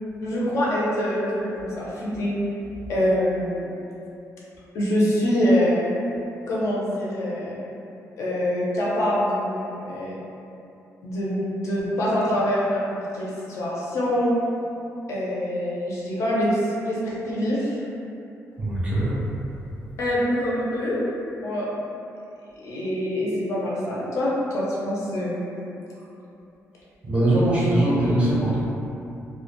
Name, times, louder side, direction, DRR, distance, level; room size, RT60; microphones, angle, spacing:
voice 1, 0.2-2.3 2.9-3.7 4.7-5.9 6.5-7.6 8.2-10.2 11.0-14.4 15.1-17.8 20.0-21.0 21.4-21.7 22.6-25.4, equal, 60° left, -6 dB, 0.5 m, -25 dB
voice 2, 18.6-19.2 27.0-28.6, right 1 dB, 20° right, -8 dB, 0.5 m, -21 dB
2.3 x 2.1 x 2.9 m, 2.8 s
cardioid pair, 175°, 6 cm